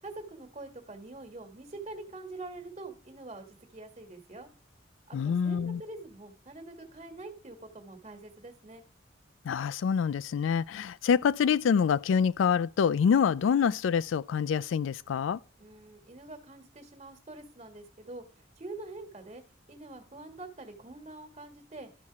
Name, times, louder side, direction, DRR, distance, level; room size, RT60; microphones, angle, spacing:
voice 1, 0.0-4.5 5.1-8.8 15.6-21.9, right 2 dB, 35° right, 1.4 m, -45 dB
voice 2, 5.1-5.8 9.5-15.4, left 7 dB, 80° left, 0.3 m, -26 dB
12.5 x 4.2 x 4.8 m
head